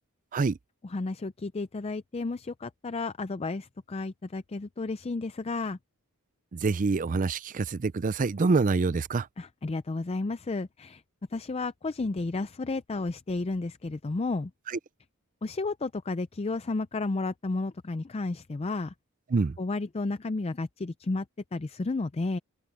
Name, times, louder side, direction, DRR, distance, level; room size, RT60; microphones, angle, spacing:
voice 1, 0.8-5.8 9.4-11.0 11.3-14.5 15.4-18.9 19.6-21.3 21.5-22.4, left 3 dB, 25° left, 0.4 m, -32 dB
voice 2, 6.5-9.3 14.7-14.8 19.3-19.5, right 4 dB, 35° right, 0.4 m, -26 dB
head